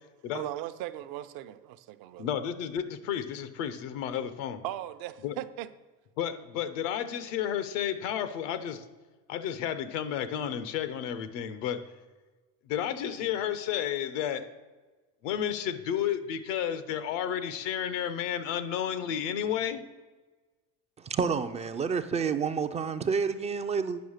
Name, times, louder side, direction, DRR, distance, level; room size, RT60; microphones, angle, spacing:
voice 1, 0.3-2.3 4.6-5.7, right 14 dB, 65° right, 0.7 m, -38 dB
voice 2, 2.2-4.6 5.2-5.3 6.2-8.8 9.3-11.8 12.7-14.5 15.2-19.8, left 9 dB, 85° left, 0.9 m, -32 dB
voice 3, 21.0-24.0, right 6 dB, 20° right, 0.3 m, -29 dB
9.3 x 5.6 x 6.4 m
cardioid pair, 135°, 37 cm